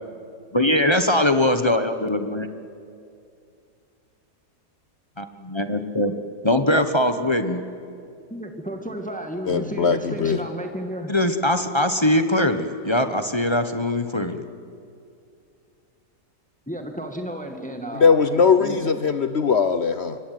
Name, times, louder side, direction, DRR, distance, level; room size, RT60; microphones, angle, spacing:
voice 1, 0.5-2.5 5.2-6.1 6.4-7.6 11.1-14.4, left 1 dB, 20° left, 8 dB, 1.0 m, -21 dB
voice 2, 8.3-11.2 16.7-19.0, equal, 5° left, 5 dB, 1.9 m, -33 dB
voice 3, 9.5-10.4 18.0-20.2, left 5 dB, 50° left, 10 dB, 0.9 m, -20 dB
26.5 x 22.5 x 9.3 m, 2.5 s
omnidirectional pair, 1.7 m